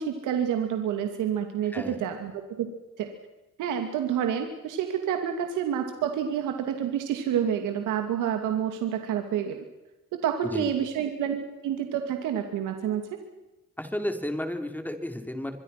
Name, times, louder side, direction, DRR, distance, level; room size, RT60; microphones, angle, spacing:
voice 1, 0.0-2.7 3.0-3.1 3.6-9.6 10.2-13.2, right 9 dB, 90° right, 5 dB, 2.6 m, -28 dB
voice 2, 13.8-15.6, left 1 dB, 5° left, 6 dB, 4.0 m, -32 dB
25.0 x 23.5 x 6.0 m, 1.0 s
cardioid pair, 90°, 30 cm